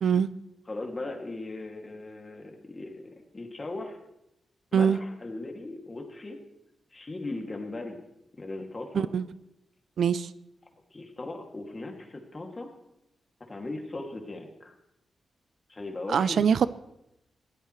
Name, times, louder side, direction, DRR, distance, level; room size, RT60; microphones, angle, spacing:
voice 1, 0.7-4.0 4.7-6.4 6.9-8.0 8.4-9.1 10.9-12.7 13.5-14.7 15.7-16.5, left 2 dB, 30° left, 2 dB, 2.5 m, -38 dB
voice 2, 10.0-10.3 16.1-16.7, right 7 dB, 75° right, 16 dB, 0.5 m, -23 dB
19.0 x 16.5 x 3.2 m, 0.84 s
cardioid pair, 100°, 0 cm